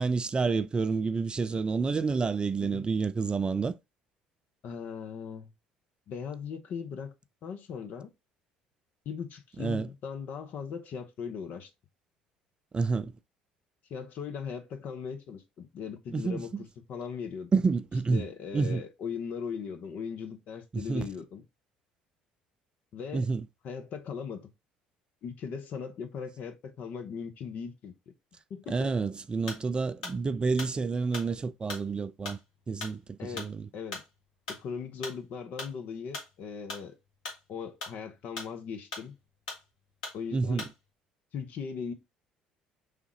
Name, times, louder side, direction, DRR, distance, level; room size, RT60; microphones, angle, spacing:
voice 1, 0.0-3.8 9.6-9.9 12.7-13.1 16.1-16.4 17.5-18.2 18.5-18.8 20.7-21.0 23.1-23.4 28.7-32.4 32.7-33.7 40.3-40.6, right 4 dB, 25° right, 0.3 m, -29 dB
voice 2, 4.6-5.5 6.1-7.1 7.4-8.1 9.0-11.7 13.9-17.5 18.1-21.4 22.9-23.3 23.6-24.5 25.2-27.9 28.5-29.0 33.2-34.0 34.5-37.0 37.5-39.1 40.1-40.7 41.3-41.9, left 6 dB, 55° left, 0.8 m, -39 dB
sound 1, 29.5-29.7 30.0-35.2 35.6-36.9 37.1-38.7 38.9-39.7 40.0-40.2 40.6-40.8, left 3 dB, 80° left, 1.5 m, -41 dB
4.9 x 3.5 x 3.1 m
hypercardioid pair, 55°, 3 cm